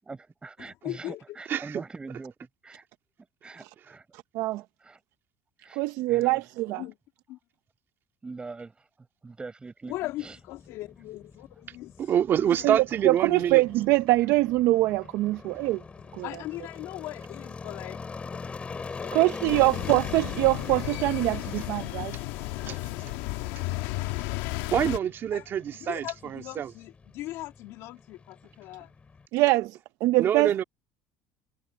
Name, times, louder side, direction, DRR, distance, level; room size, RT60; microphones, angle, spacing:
voice 1, 0.0-2.3 2.6-2.8 3.4-4.0 4.8-5.0 5.6-5.8 6.1-6.4 8.2-8.7 9.2-9.9 10.2-10.4, right 3 dB, 15° right, 7.7 m, -42 dB
voice 2, 0.6-1.2 6.8-6.9 7.3-7.4 9.9-12.1 12.7-12.8 16.2-18.0 19.0-19.3 25.3-25.5 25.8-28.9, left 17 dB, 70° left, 2.6 m, -39 dB
voice 3, 1.5-1.8 12.0-13.6 22.6-23.1 24.7-26.7 30.2-30.6, right 9 dB, 45° right, 2.1 m, -26 dB
voice 4, 5.7-6.8 12.6-12.8 13.0-15.8 16.1-16.3 19.1-22.1 29.3-30.5, right 19 dB, 70° right, 0.8 m, -24 dB
sound 1, 9.9-29.3, left 4 dB, 20° left, 7.3 m, -43 dB
sound 2, 19.4-25.0, left 20 dB, 85° left, 1.8 m, -33 dB
cardioid pair, 120°, 5 cm